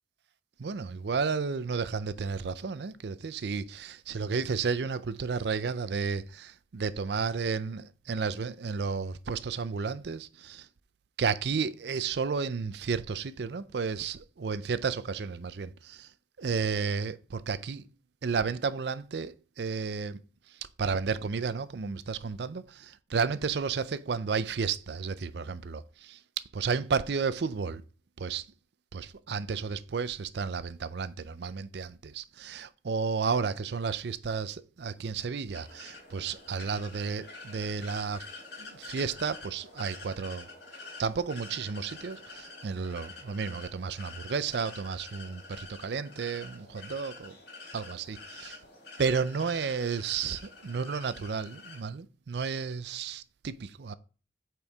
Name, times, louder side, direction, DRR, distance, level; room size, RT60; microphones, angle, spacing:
voice 1, 0.6-10.7 11.2-16.1 16.4-17.9 18.2-20.2 20.8-26.2 26.5-27.8 28.2-28.4 28.9-38.2 38.6-40.5 41.0-47.4 47.7-48.6 49.0-53.9, right 5 dB, 70° right, 0.5 m, -32 dB
sound 1, 35.5-51.8, left 3 dB, 70° left, 3.4 m, -47 dB
8.5 x 4.5 x 3.5 m
head